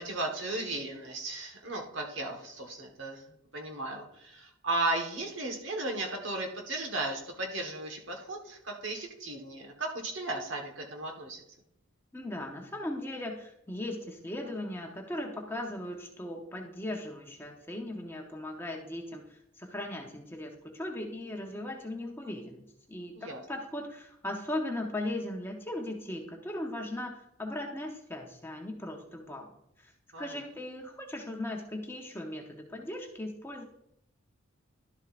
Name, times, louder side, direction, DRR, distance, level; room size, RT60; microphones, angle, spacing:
voice 1, 0.0-3.2 3.5-11.4 23.1-23.4 30.1-30.4, right 2 dB, 60° right, 3 dB, 1.3 m, -35 dB
voice 2, 12.1-29.5 29.8-29.9 30.2-33.6, left 1 dB, 10° left, 1 dB, 0.8 m, -38 dB
11.5 x 7.3 x 2.5 m, 0.78 s
head